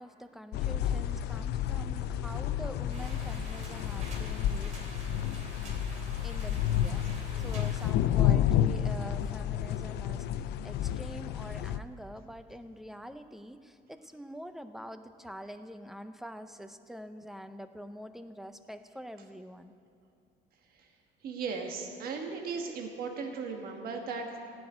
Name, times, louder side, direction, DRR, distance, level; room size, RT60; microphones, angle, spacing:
voice 1, 0.0-4.8 6.2-7.0 7.4-10.3 10.6-19.7, equal, ahead, 9 dB, 0.6 m, -45 dB
sound 1, 0.5-11.8, left 10 dB, 70° left, 0.5 m, -30 dB
sound 2, 2.9-7.9, right 2 dB, 40° right, 2.9 m, -48 dB
voice 2, 21.2-24.4, right 5 dB, 55° right, 3 dB, 1.4 m, -36 dB
15.0 x 6.2 x 9.7 m, 2.6 s
cardioid pair, 125°, 18 cm